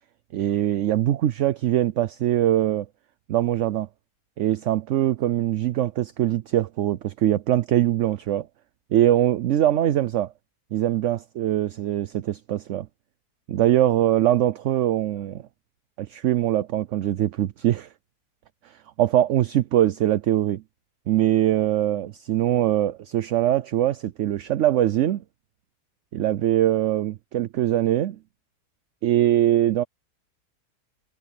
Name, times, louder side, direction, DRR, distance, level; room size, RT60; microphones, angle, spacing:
voice 1, 0.3-2.9 3.3-3.9 4.4-8.5 8.9-10.3 10.7-12.9 13.5-15.4 16.0-17.9 19.0-20.6 21.1-25.2 26.1-28.2 29.0-29.8, right 12 dB, 60° right, 0.8 m, -22 dB
omnidirectional pair, 1.6 m